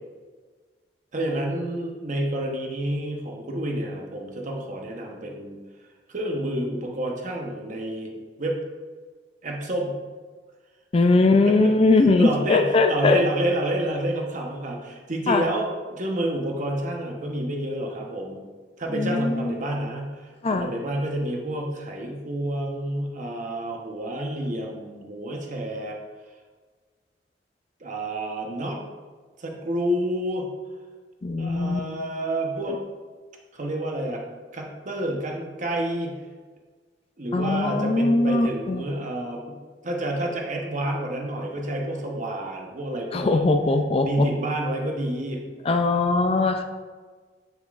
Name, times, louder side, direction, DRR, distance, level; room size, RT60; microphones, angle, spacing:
voice 1, 1.1-5.6 6.1-8.6 9.4-10.0 11.4-11.7 12.2-18.4 18.8-26.0 27.8-28.8 29.4-30.5 31.4-32.8 33.5-34.2 34.5-36.2 37.2-39.6 39.8-43.4 44.0-45.4, right 1 dB, 45° right, 1 dB, 1.0 m, -29 dB
voice 2, 10.9-13.2 15.3-15.4 18.9-19.6 20.4-20.7 31.2-31.8 37.3-38.9 43.1-44.3 45.7-46.6, left 3 dB, 35° left, 6 dB, 0.4 m, -21 dB
6.9 x 6.7 x 2.5 m, 1.4 s
head